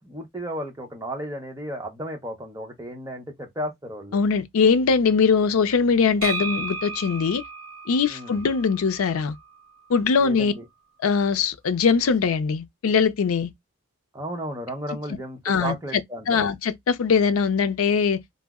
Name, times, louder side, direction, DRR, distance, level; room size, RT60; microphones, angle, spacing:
voice 1, 0.0-4.2 8.1-8.4 10.2-10.6 14.1-16.5, right 1 dB, 15° right, 0.8 m, -34 dB
voice 2, 4.1-7.4 7.9-9.4 9.9-10.5 11.0-13.5 15.5-16.0 16.3-18.2, left 5 dB, 85° left, 0.4 m, -21 dB
sound 1, 6.2-10.0, right 4 dB, 75° right, 0.6 m, -35 dB
2.6 x 2.0 x 3.4 m
head